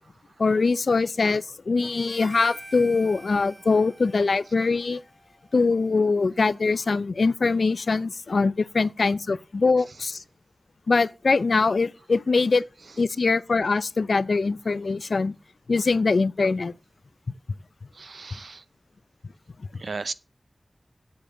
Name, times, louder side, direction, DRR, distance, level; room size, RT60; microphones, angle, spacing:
voice 1, 0.4-5.0 5.5-10.2 10.9-12.6 13.0-15.3 15.7-16.7, left 4 dB, 85° left, 0.5 m, -23 dB
Harmonica, 1.8-6.3, right 1 dB, 25° right, 3.9 m, -47 dB
voice 2, 17.9-18.6 19.8-20.1, right 4 dB, 90° right, 0.6 m, -35 dB
8.0 x 6.8 x 7.5 m
wide cardioid pair, 55°, 0 cm